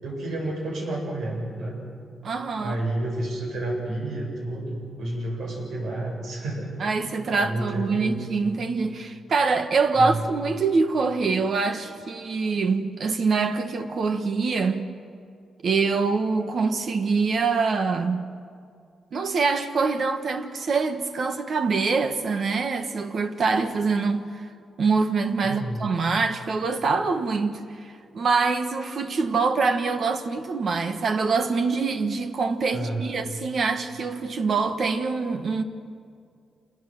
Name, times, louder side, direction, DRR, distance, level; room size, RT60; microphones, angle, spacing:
voice 1, 0.0-1.8 2.6-6.7 7.3-8.2 9.9-10.2 25.4-25.9 32.7-33.1, right 1 dB, 80° right, 7.5 m, -30 dB
voice 2, 2.2-2.8 6.8-14.9 15.6-18.2 19.1-24.4 24.8-35.6, right 4 dB, 50° right, 1.4 m, -24 dB
27.5 x 20.5 x 7.8 m
cardioid pair, 130°, 0 cm